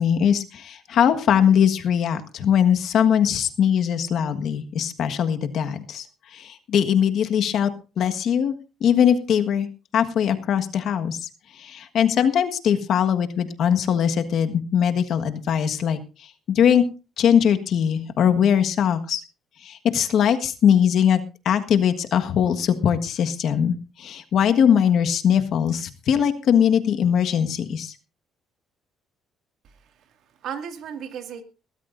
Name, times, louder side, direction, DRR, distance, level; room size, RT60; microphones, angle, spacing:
voice 1, 0.0-6.0 6.3-7.7 8.0-8.5 8.8-9.7 9.9-16.0 16.5-16.8 17.2-19.2 19.6-27.9, left 8 dB, 60° left, 7 dB, 1.5 m, -21 dB
voice 2, 29.6-31.4, right 8 dB, 65° right, 7 dB, 2.3 m, -36 dB
21.5 x 13.5 x 2.6 m, 0.31 s
cardioid pair, 120°, 0 cm